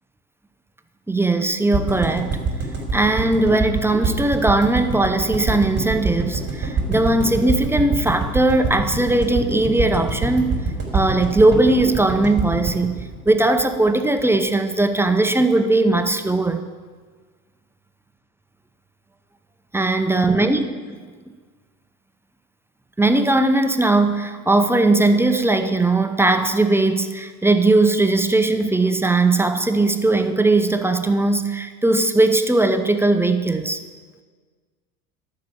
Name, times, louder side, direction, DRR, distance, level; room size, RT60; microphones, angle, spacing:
voice 1, 1.1-2.4 2.9-10.6 10.9-16.6 19.7-21.0 23.0-33.8, right 2 dB, 5° right, 8 dB, 0.8 m, -19 dB
sound 1, 1.7-13.9 14.2-14.3 14.5-14.6, right 4 dB, 25° right, 4.1 m, -25 dB
11.5 x 6.1 x 8.3 m, 1.5 s
hypercardioid pair, 75°, 44 cm